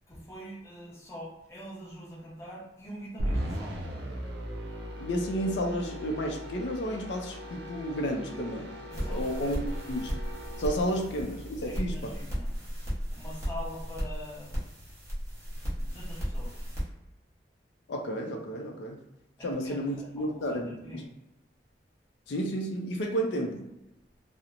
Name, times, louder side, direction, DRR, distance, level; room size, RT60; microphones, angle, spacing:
voice 1, 0.1-3.7 8.9-9.7 11.6-12.5 13.1-14.7 15.8-16.7 19.4-21.1, equal, 15° left, -5 dB, 0.7 m, -44 dB
sound 1, 3.2-12.6, equal, 70° right, 0.5 m, -38 dB
voice 2, 5.0-8.7 9.0-9.6 9.9-10.1 10.6-12.1 17.9-19.0 19.4-21.0 22.3-23.7, equal, 75° left, 1 dB, 0.4 m, -32 dB
sound 2, 8.9-16.8, equal, 15° right, 1.0 m, -35 dB
2.8 x 2.0 x 2.5 m, 0.93 s
head